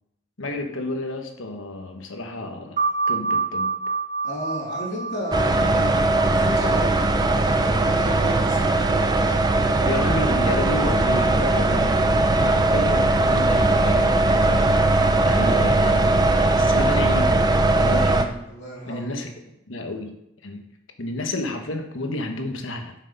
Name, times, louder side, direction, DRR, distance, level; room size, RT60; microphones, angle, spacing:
voice 1, 0.4-3.7 9.8-12.0 12.4-14.7 15.2-17.4 17.7-18.4 18.9-19.3 19.7-20.2 20.4-20.6 21.0-22.9, left 2 dB, 75° left, 4 dB, 1.2 m, -31 dB
sound 1, 2.8-7.9, right 4 dB, 40° right, 1.9 m, -28 dB
voice 2, 4.2-5.9 6.2-10.0 11.0-11.7 18.5-19.2, equal, 55° left, -5 dB, 3.3 m, -34 dB
sound 2, 5.3-18.2, right 2 dB, 20° right, 0.5 m, -19 dB
7.6 x 6.5 x 5.3 m, 0.82 s
head